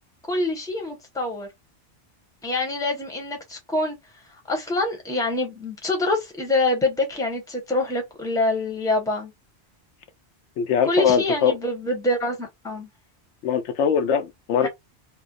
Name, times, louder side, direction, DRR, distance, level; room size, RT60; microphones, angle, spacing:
voice 1, 0.3-1.5 2.4-4.0 4.5-9.3 10.9-12.9 14.6-14.7, left 2 dB, 5° left, 0.8 m, -25 dB
voice 2, 10.6-11.5 13.4-14.7, left 7 dB, 85° left, 0.9 m, -21 dB
2.7 x 2.0 x 2.3 m
omnidirectional pair, 1.1 m